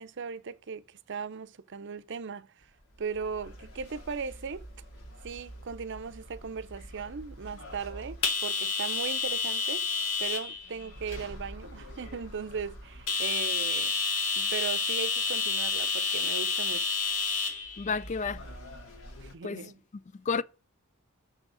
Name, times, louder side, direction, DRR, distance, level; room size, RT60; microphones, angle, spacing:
voice 1, 0.0-2.7 3.0-4.7 5.2-13.9 14.4-17.0 19.2-19.8, right 5 dB, 60° right, 0.6 m, -38 dB
sound 1, 3.2-19.3, left 5 dB, 70° left, 2.1 m, -32 dB
voice 2, 17.8-18.5 19.4-19.7 20.1-20.4, left 5 dB, 35° left, 0.4 m, -31 dB
6.4 x 6.3 x 6.2 m
head